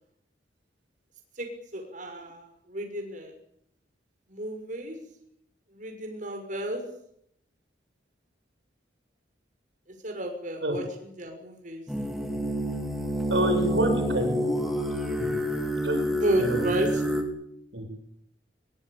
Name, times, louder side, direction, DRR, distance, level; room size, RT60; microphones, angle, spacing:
voice 1, 1.4-3.3 4.3-5.0 5.7-6.8 10.0-11.8 16.1-17.0, right 1 dB, 45° right, 4 dB, 6.1 m, -32 dB
sound 1, 11.9-17.2, equal, ahead, 4.4 m, -28 dB
voice 2, 13.3-14.6 15.2-15.3 15.8-16.0 16.4-16.6 17.7-17.8, right 1 dB, 80° right, 5 dB, 7.9 m, -27 dB
23.0 x 23.0 x 8.9 m, 0.72 s
head